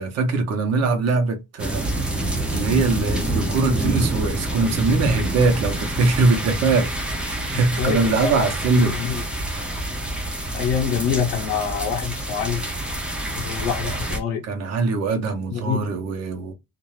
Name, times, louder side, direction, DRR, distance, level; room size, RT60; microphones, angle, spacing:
voice 1, 0.0-8.9 13.8-13.9 14.4-16.5, right 3 dB, 45° right, 0.9 m, -22 dB
sound 1, 1.6-14.2, right 1 dB, 5° right, 0.5 m, -27 dB
voice 2, 7.5-8.5 8.8-9.2 10.5-12.6 13.4-14.4 15.5-15.8, left 7 dB, 80° left, 0.8 m, -26 dB
2.5 x 2.4 x 3.1 m
cardioid pair, 160°, 36 cm